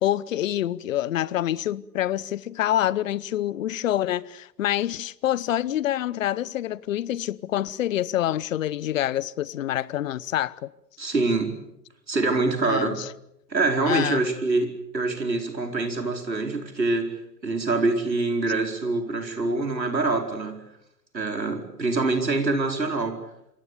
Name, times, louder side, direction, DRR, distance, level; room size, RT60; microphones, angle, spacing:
voice 1, 0.0-10.7 12.6-13.1 13.9-14.3, left 12 dB, 50° left, 1.0 m, -26 dB
voice 2, 11.0-11.6 12.1-13.0 13.5-17.1 17.4-20.6 21.1-23.2, right 3 dB, 80° right, 4.7 m, -25 dB
27.5 x 24.0 x 7.1 m
figure-of-eight pair, 110°, 50 cm